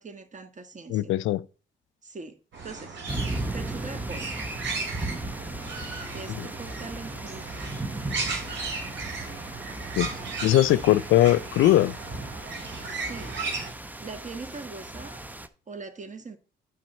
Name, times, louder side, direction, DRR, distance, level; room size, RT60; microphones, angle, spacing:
voice 1, 0.0-1.1 2.0-3.0 3.5-4.3 6.1-7.7 12.9-13.3 14.0-15.3 15.7-16.4, right 4 dB, 40° right, 1.7 m, -41 dB
voice 2, 0.9-1.4 10.0-10.1 10.4-11.9, left 14 dB, 80° left, 0.5 m, -20 dB
sound 1, 2.5-13.7, right 4 dB, 65° right, 3.6 m, -36 dB
sound 2, 3.1-15.5, right 2 dB, 10° right, 0.8 m, -37 dB
9.1 x 6.3 x 4.3 m
cardioid pair, 90°, 20 cm